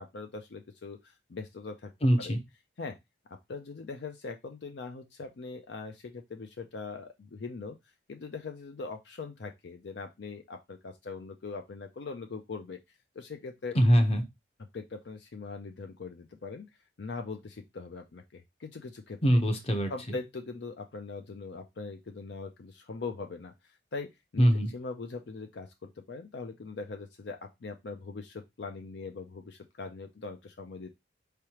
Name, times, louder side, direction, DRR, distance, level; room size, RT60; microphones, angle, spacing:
voice 1, 0.0-1.9 2.2-2.3 2.8-3.0 3.3-7.8 8.1-12.8 13.2-13.8 14.7-16.7 17.0-19.2 19.9-24.5 24.7-30.9, left 4 dB, 65° left, 5 dB, 0.5 m, -41 dB
voice 2, 2.0-2.4 13.7-14.2 19.2-20.2 24.4-24.7, equal, 30° left, 5 dB, 0.8 m, -23 dB
4.6 x 3.4 x 2.8 m, 0.20 s
head